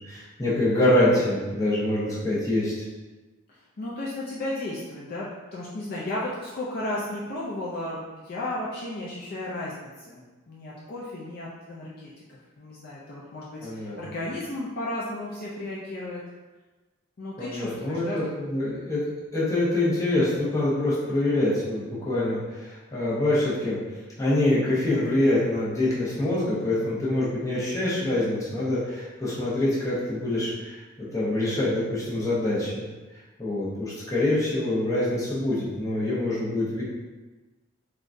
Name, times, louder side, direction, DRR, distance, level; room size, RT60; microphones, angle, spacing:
voice 1, 0.0-2.7 13.6-14.2 17.4-23.8 24.2-32.9 33.4-36.8, left 1 dB, 15° left, -9 dB, 0.8 m, -25 dB
voice 2, 3.5-12.1 12.6-16.2 17.2-18.2, left 1 dB, 45° left, -6 dB, 0.4 m, -34 dB
3.6 x 2.3 x 2.5 m, 1.2 s
head